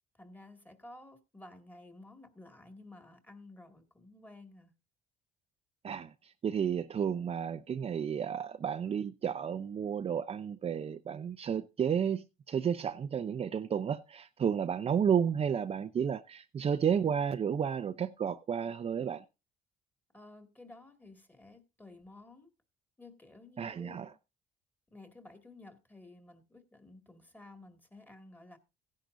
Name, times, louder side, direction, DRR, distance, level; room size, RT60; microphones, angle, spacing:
voice 1, 0.2-4.7 20.1-22.5 23.0-24.1 24.9-28.6, left 2 dB, 10° left, 2.2 m, -53 dB
voice 2, 5.8-19.2 23.6-24.1, right 7 dB, 35° right, 0.6 m, -32 dB
16.0 x 10.5 x 2.7 m
cardioid pair, 110°, 17 cm